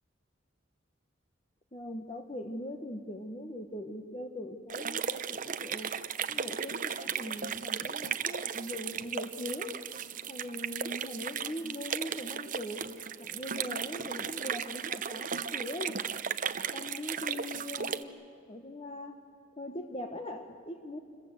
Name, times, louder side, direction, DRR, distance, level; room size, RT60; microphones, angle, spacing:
voice 1, 1.7-5.9 6.3-9.9 10.3-12.8 13.2-16.0 16.7-18.2 18.5-19.2 19.6-21.0, left 1 dB, 30° left, 4 dB, 1.2 m, -41 dB
sound 1, 4.7-18.0, right 7 dB, 45° right, 0.8 m, -36 dB
27.5 x 22.0 x 7.8 m, 2.3 s
head